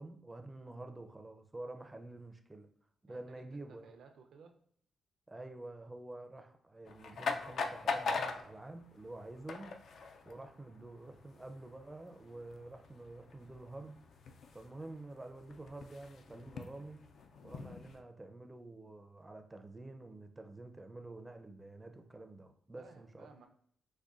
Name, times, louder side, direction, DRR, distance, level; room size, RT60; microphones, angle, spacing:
voice 1, 0.0-2.7 3.0-3.9 5.3-9.8 10.2-13.9 14.5-17.0 17.4-23.3, right 2 dB, 15° right, 6 dB, 0.4 m, -49 dB
voice 2, 3.1-3.4 3.7-4.6 22.8-23.5, right 5 dB, 75° right, 4 dB, 0.4 m, -58 dB
sound 1, 6.9-18.0, left 4 dB, 70° left, 0.3 m, -43 dB
5.0 x 2.2 x 2.4 m, 0.63 s
cardioid pair, 85°, 0 cm